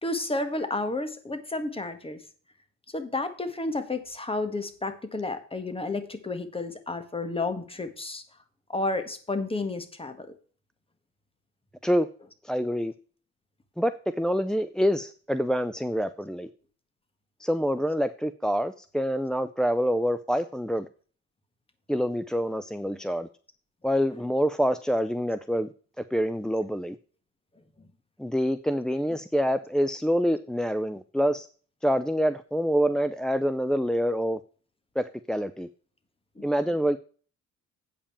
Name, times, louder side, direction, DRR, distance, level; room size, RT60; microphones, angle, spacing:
voice 1, 0.0-2.2 2.9-8.2 8.7-10.3 36.4-36.5, left 2 dB, 20° left, 9 dB, 1.7 m, -31 dB
voice 2, 12.4-12.9 13.8-16.5 17.4-20.9 21.9-23.3 23.8-25.7 26.0-27.0 28.2-31.5 31.8-34.4 35.0-35.7 36.4-37.0, equal, ahead, 9 dB, 0.4 m, -26 dB
8.5 x 5.3 x 7.2 m, 0.41 s
cardioid pair, 90°, 30 cm